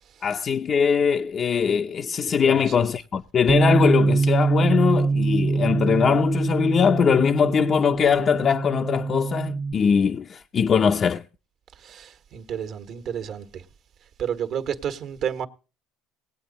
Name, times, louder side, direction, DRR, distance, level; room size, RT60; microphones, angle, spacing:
voice 1, 0.2-11.2, left 7 dB, 40° left, 0.6 m, -21 dB
voice 2, 2.3-2.9 11.7-13.6 14.2-15.5, right 8 dB, 55° right, 1.5 m, -31 dB
Bass guitar, 3.5-9.7, right 4 dB, 20° right, 1.0 m, -23 dB
19.0 x 8.5 x 4.1 m
supercardioid pair, 85°, 0 cm